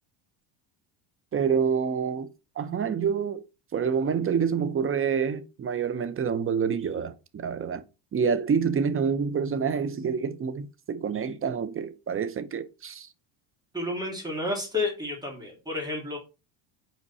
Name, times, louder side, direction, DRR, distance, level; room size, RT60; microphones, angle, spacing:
voice 1, 1.3-2.3 2.6-3.5 3.7-7.8 8.1-13.1, right 6 dB, 25° right, 0.8 m, -27 dB
voice 2, 13.7-16.2, left 2 dB, 10° right, 3.1 m, -31 dB
5.4 x 4.5 x 4.2 m
supercardioid pair, 100°, 49 cm